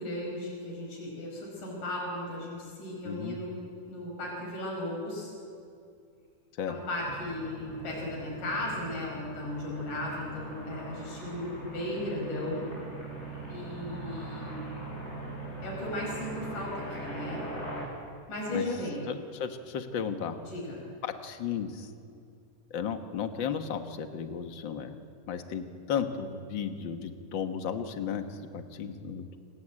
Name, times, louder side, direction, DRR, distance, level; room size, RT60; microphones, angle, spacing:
voice 1, 0.0-3.5 3.9-5.3 6.7-12.7 13.5-14.6 15.6-17.4 18.3-19.1 20.4-20.8, left 1 dB, 75° left, -4 dB, 6.9 m, -36 dB
voice 2, 3.0-3.4 6.6-6.7 18.5-18.6 19.1-20.4 21.0-21.9 22.7-25.0 25.3-28.2 28.5-29.4, left 7 dB, 50° left, 7 dB, 1.6 m, -34 dB
sound 1, 7.0-17.9, right 2 dB, 20° left, 7.4 m, -41 dB
28.0 x 19.5 x 8.9 m, 2.5 s
omnidirectional pair, 3.7 m